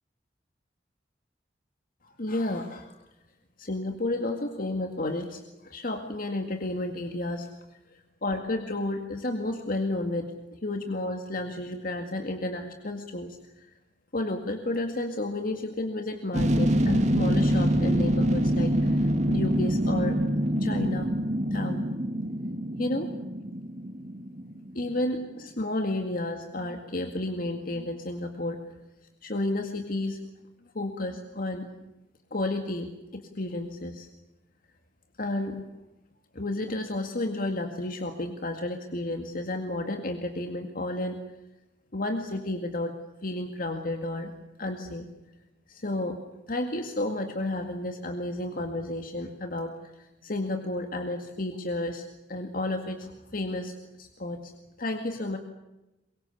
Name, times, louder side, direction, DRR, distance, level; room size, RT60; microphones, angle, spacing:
voice 1, 2.0-3.0 3.6-7.5 7.9-13.7 14.1-20.2 20.6-21.1 21.5-21.8 22.8-23.1 24.7-28.6 29.2-30.2 30.7-31.7 32.3-34.1 35.2-35.7 36.3-41.2 41.9-43.0 43.2-44.3 44.6-45.1 45.7-46.2 46.5-54.5 54.8-55.4, left 1 dB, 55° left, 5 dB, 2.1 m, -32 dB
sound 1, 16.3-24.9 25.2-25.3, equal, 40° right, 2.4 m, -25 dB
24.0 x 22.0 x 8.4 m, 0.98 s
head